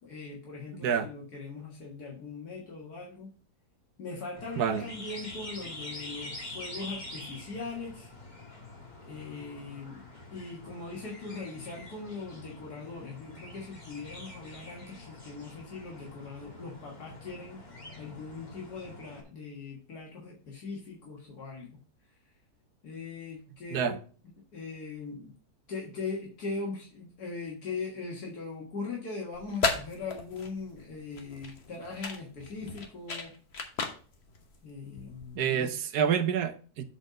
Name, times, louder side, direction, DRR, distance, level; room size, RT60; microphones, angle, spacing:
voice 1, 0.0-3.3 4.0-8.1 9.0-10.0 10.3-17.6 18.0-21.7 22.8-24.0 24.5-25.3 25.7-33.3 34.6-35.7, left 4 dB, 80° left, -3 dB, 2.1 m, -40 dB
sound 1, 4.4-19.2, left 2 dB, 30° left, 1.7 m, -46 dB
voice 2, 4.6-4.9 23.7-24.0 35.3-36.8, right 8 dB, 85° right, 10 dB, 1.3 m, -28 dB
sound 2, 29.3-35.4, left 4 dB, 45° left, 1.2 m, -36 dB
7.7 x 4.2 x 5.1 m, 0.40 s
omnidirectional pair, 1.6 m